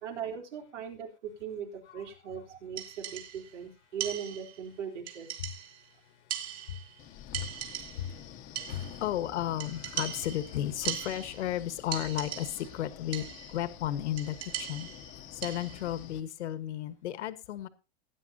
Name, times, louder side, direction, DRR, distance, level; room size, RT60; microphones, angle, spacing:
voice 1, 0.0-5.3, right 7 dB, 80° right, 3 dB, 3.7 m, -39 dB
sound 1, 2.8-3.5 4.0-4.7 5.1-5.9 6.3-7.0 7.3-8.2 8.5-9.1 9.6-11.6 11.9-12.8 13.1-13.6 14.2-15.9, right 10 dB, 60° right, 3.2 m, -39 dB
Wind, 7.0-16.2, left 10 dB, 25° left, 0.9 m, -48 dB
voice 2, 7.3-14.9 15.3-17.7, left 12 dB, 75° left, 12 dB, 1.4 m, -34 dB
18.5 x 9.7 x 2.8 m, 0.29 s
supercardioid pair, 150°, 35 cm